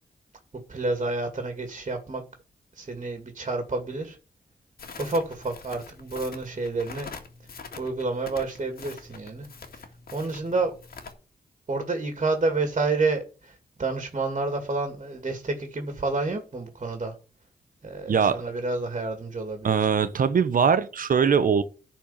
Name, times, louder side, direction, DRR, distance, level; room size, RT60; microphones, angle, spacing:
voice 1, 0.7-2.2 2.8-4.2 5.0-7.1 7.8-9.5 9.7-9.8 10.1-10.7 11.7-17.1 17.8-19.9, right 3 dB, 40° right, 2.4 m, -29 dB
Crackle, 4.8-11.1, left 5 dB, 65° left, 2.0 m, -44 dB
voice 2, 18.1-18.4 19.6-21.6, right 6 dB, 60° right, 0.9 m, -21 dB
10.5 x 4.5 x 7.3 m
cardioid pair, 55°, 16 cm